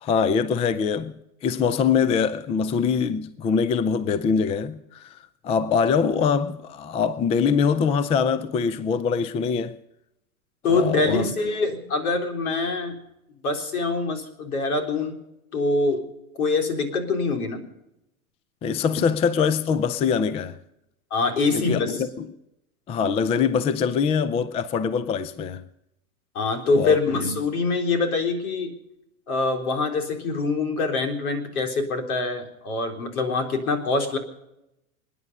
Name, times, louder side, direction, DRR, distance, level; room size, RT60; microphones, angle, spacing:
voice 1, 0.0-5.2 5.4-9.8 10.7-11.3 18.6-20.6 21.5-22.3 22.9-25.6 26.7-27.0, left 6 dB, 15° left, 0.5 m, -23 dB
voice 2, 10.6-13.0 13.4-15.2 15.5-16.1 16.4-17.6 21.1-22.0 26.3-28.7 29.3-34.2, left 3 dB, 80° left, 4.0 m, -24 dB
26.5 x 10.0 x 5.4 m
hypercardioid pair, 125°, 43 cm